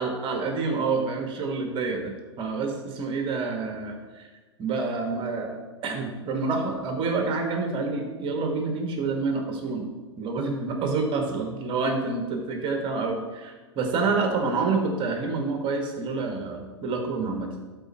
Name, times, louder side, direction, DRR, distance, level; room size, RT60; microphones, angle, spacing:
voice 1, 0.0-4.3 4.6-9.9 10.2-17.5, right 4 dB, 35° right, 4 dB, 1.4 m, -28 dB
12.5 x 4.4 x 4.3 m, 1.3 s
figure-of-eight pair, 100°, 15 cm